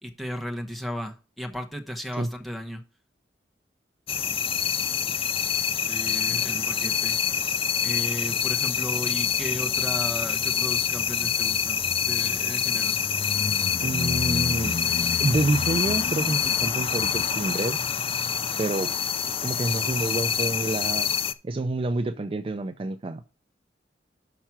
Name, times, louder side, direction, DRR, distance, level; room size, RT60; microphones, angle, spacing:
voice 1, 0.0-2.8 5.9-7.2 7.8-13.0, equal, ahead, 1.0 m, -35 dB
sound 1, 4.1-21.3, left 7 dB, 30° left, 0.4 m, -26 dB
voice 2, 6.3-6.6 13.8-14.9 15.2-17.8 18.6-19.0 19.3-21.1 21.4-23.2, right 2 dB, 30° right, 0.4 m, -28 dB
5.9 x 5.6 x 5.9 m
head